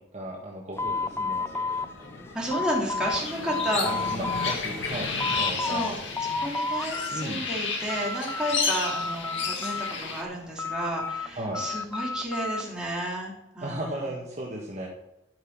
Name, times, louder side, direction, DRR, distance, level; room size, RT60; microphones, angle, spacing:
voice 1, 0.0-1.7 3.8-6.1 6.3-6.4 7.1-7.4 11.4-11.6 13.6-14.9, right 1 dB, 35° right, -2 dB, 1.7 m, -36 dB
sound 1, 0.8-11.8, left 2 dB, 85° left, 1.7 m, -43 dB
sound 2, 0.8-3.2 3.5-4.6 4.9-5.9 6.2-7.2 7.6-8.6 8.9-10.1 10.6-12.7, left 3 dB, 15° left, 0.5 m, -31 dB
voice 2, 2.3-4.0 5.6-6.0 6.4-14.0, right 1 dB, 5° right, -4 dB, 3.4 m, -32 dB
sound 3, 3.1-10.2, left 5 dB, 65° left, 2.0 m, -32 dB
12.5 x 6.0 x 6.2 m, 0.91 s
head